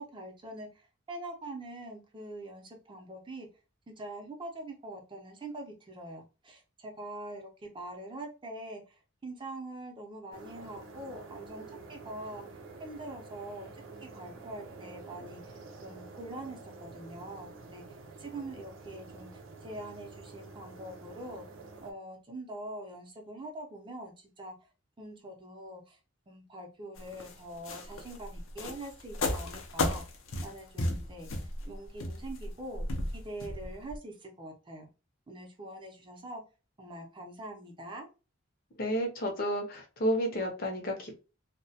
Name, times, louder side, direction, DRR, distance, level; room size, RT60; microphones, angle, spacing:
voice 1, 0.0-3.5 4.0-21.4 21.8-24.5 25.0-26.0 26.3-30.0 30.4-34.9 35.3-36.4 36.8-38.1, right 1 dB, 25° right, 1 dB, 0.5 m, -44 dB
sound 1, 10.3-21.9, right 3 dB, 85° right, 0.5 m, -48 dB
sound 2, 27.0-34.0, left 2 dB, 90° left, 0.5 m, -34 dB
voice 2, 38.8-41.2, equal, 50° left, 2 dB, 0.6 m, -31 dB
2.2 x 2.1 x 2.7 m, 0.32 s
head